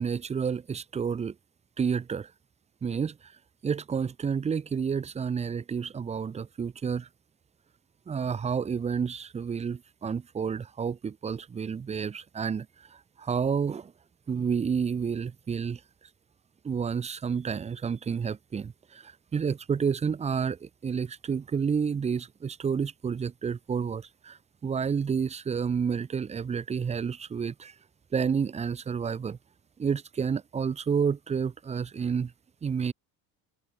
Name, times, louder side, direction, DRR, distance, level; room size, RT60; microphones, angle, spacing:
voice 1, 0.0-1.3 1.8-2.3 2.8-3.3 3.6-7.1 8.1-13.9 14.3-15.8 16.6-27.7 28.1-29.4 29.8-32.3 32.6-32.9, right 6 dB, 15° right, 0.4 m, -30 dB
open air
supercardioid pair, 90°, 43 cm